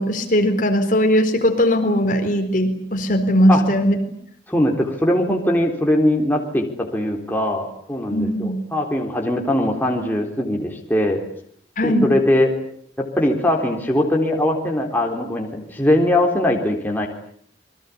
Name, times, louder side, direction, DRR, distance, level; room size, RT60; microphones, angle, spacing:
voice 1, 0.0-4.0 8.1-8.6 11.8-12.1, equal, 45° left, 5 dB, 4.2 m, -19 dB
voice 2, 4.5-11.2 11.8-12.5 13.0-17.1, left 1 dB, 10° left, 0 dB, 3.8 m, -21 dB
28.5 x 22.5 x 8.5 m, 0.64 s
head